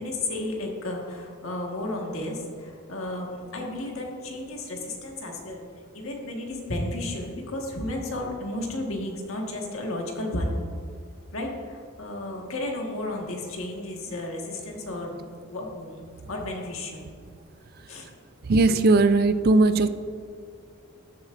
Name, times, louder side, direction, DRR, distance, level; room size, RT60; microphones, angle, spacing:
voice 1, 0.0-5.6 5.9-10.6 11.3-17.1 17.9-18.1, left 1 dB, 85° left, 0 dB, 1.5 m, -33 dB
voice 2, 18.4-19.9, right 3 dB, 50° right, 11 dB, 0.4 m, -19 dB
13.5 x 7.4 x 2.5 m, 2.4 s
head